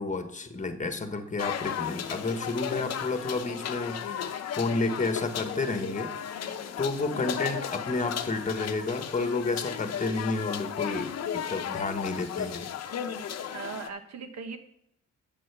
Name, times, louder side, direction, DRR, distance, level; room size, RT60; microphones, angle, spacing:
voice 1, 0.0-6.1 6.8-11.1 11.5-12.7, left 3 dB, 25° left, 8 dB, 1.3 m, -31 dB
sound 1, 1.4-13.9, left 8 dB, 55° left, 0.8 m, -35 dB
voice 2, 4.8-5.1 7.2-7.4 13.5-14.6, right 5 dB, 60° right, 8 dB, 1.3 m, -40 dB
8.8 x 6.3 x 6.0 m, 0.75 s
cardioid pair, 90°, 30 cm